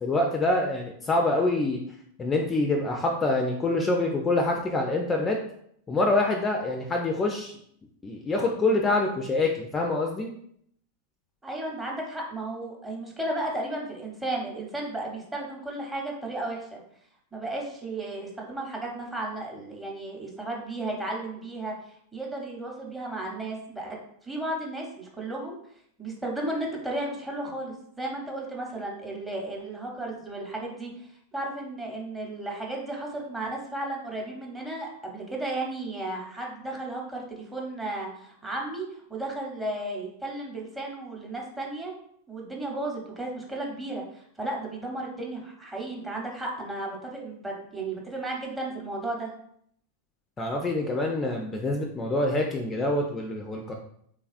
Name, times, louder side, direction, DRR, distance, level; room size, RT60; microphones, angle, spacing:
voice 1, 0.0-1.8 2.2-5.4 5.9-7.5 8.0-10.3 50.4-53.7, left 2 dB, 20° left, 2 dB, 0.4 m, -26 dB
voice 2, 11.4-16.8 17.3-21.7 22.1-25.6 26.0-41.9 42.3-49.3, right 2 dB, 10° right, -1 dB, 0.8 m, -34 dB
3.3 x 2.3 x 2.4 m, 0.68 s
hypercardioid pair, 100°, 0 cm